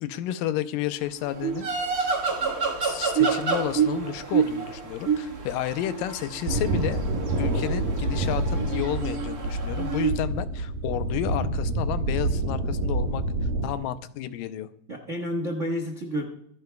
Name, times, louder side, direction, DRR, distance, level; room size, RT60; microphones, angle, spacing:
voice 1, 0.0-1.7 2.8-7.0 7.4-13.3 13.6-14.7, left 12 dB, 85° left, 11 dB, 2.3 m, -31 dB
sound 1, 1.3-10.1, right 6 dB, 45° right, 1.3 m, -28 dB
sound 2, 6.5-13.7, right 2 dB, 80° right, 3.2 m, -27 dB
voice 2, 14.9-16.2, equal, 65° right, 1 dB, 0.7 m, -30 dB
25.5 x 10.5 x 2.3 m, 0.72 s
omnidirectional pair, 3.9 m